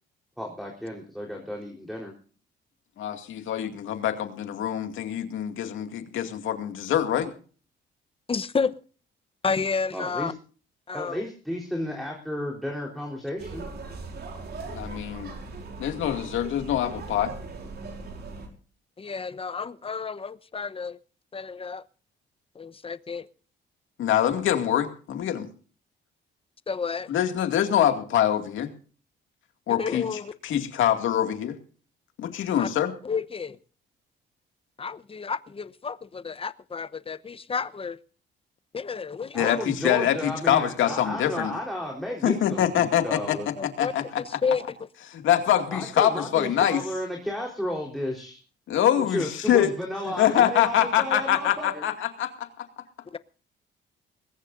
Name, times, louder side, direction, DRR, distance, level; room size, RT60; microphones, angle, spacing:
voice 1, 0.4-2.1 9.9-10.3 10.9-13.7 39.3-43.5 45.7-48.4 49.1-51.8, left 1 dB, ahead, 0 dB, 4.0 m, -33 dB
voice 2, 3.0-7.3 14.7-15.3 15.8-17.3 24.0-25.5 27.1-28.7 29.7-30.0 30.4-31.6 32.2-32.9 39.3-41.6 42.2-44.2 45.1-46.8 48.7-49.7 50.1-51.9 52.2-52.7, left 10 dB, 80° left, 7 dB, 2.3 m, -24 dB
voice 3, 8.3-8.7 9.4-10.3 10.9-11.3 19.0-21.0 21.3-21.8 22.5-23.3 26.7-27.1 29.8-30.3 32.6-32.7 33.0-33.6 34.8-38.0 38.7-39.6 43.6-44.6 50.4-50.5 53.1-53.2, left 5 dB, 30° left, 15 dB, 0.9 m, -31 dB
sound 1, 13.4-18.5, right 3 dB, 55° right, 4.8 m, -39 dB
21.0 x 18.0 x 2.6 m, 0.41 s
cardioid pair, 90°, 20 cm